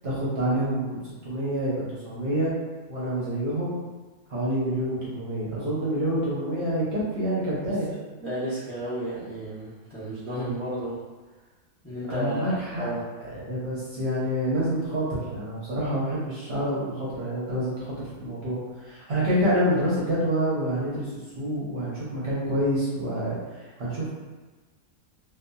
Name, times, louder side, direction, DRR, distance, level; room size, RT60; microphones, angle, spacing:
voice 1, 0.0-2.5 2.9-3.8 4.3-7.9 12.1-12.8 13.2-23.4 23.8-24.1, equal, 55° right, -8 dB, 0.8 m, -27 dB
voice 2, 8.2-11.0 11.8-13.0, equal, 15° left, -12 dB, 0.5 m, -32 dB
2.6 x 2.5 x 2.2 m, 1.3 s
omnidirectional pair, 1.5 m